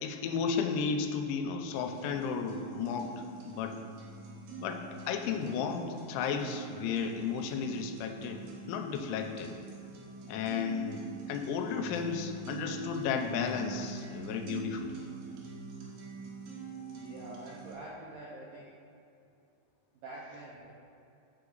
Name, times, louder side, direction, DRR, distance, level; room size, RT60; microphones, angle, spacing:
voice 1, 0.0-3.8 4.6-9.5 10.3-15.0, left 6 dB, 90° left, 5 dB, 3.0 m, -34 dB
sound 1, 1.7-17.7, right 5 dB, 70° right, 2.2 m, -45 dB
voice 2, 17.0-18.8 20.0-20.7, right 2 dB, 90° right, -6 dB, 2.0 m, -46 dB
6.9 x 6.1 x 3.9 m, 2.6 s
omnidirectional pair, 5.3 m